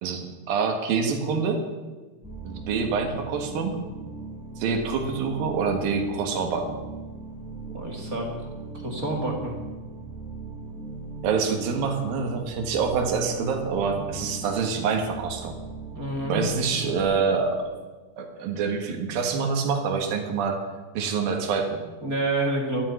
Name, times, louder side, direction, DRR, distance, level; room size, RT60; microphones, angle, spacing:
voice 1, 0.0-1.6 2.4-3.8 4.6-6.8 11.2-15.6 16.3-17.8 18.2-20.6 20.9-21.8, right 5 dB, 85° right, 4 dB, 3.5 m, -26 dB
sound 1, 2.2-17.0, right 3 dB, ahead, 2.8 m, -38 dB
voice 2, 7.7-8.3 8.7-9.5 15.9-16.5 22.0-22.8, right 2 dB, 30° right, 1 dB, 2.0 m, -28 dB
12.5 x 9.5 x 9.4 m, 1.3 s
omnidirectional pair, 4.0 m